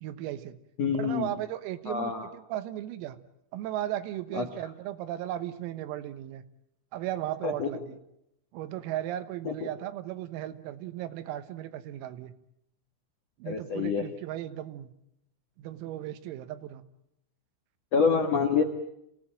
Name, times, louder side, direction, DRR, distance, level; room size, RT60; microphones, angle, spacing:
voice 1, 0.0-0.6 0.9-3.2 3.5-6.4 6.9-8.0 8.5-12.3 13.4-14.9 15.6-16.8, right 13 dB, 90° right, 11 dB, 3.9 m, -36 dB
voice 2, 0.8-1.3 1.8-2.3 4.3-4.4 7.4-7.7 9.4-9.5 13.4-14.0 17.9-18.6, left 5 dB, 80° left, 4 dB, 1.4 m, -26 dB
28.5 x 17.5 x 9.0 m, 0.80 s
omnidirectional pair, 6.0 m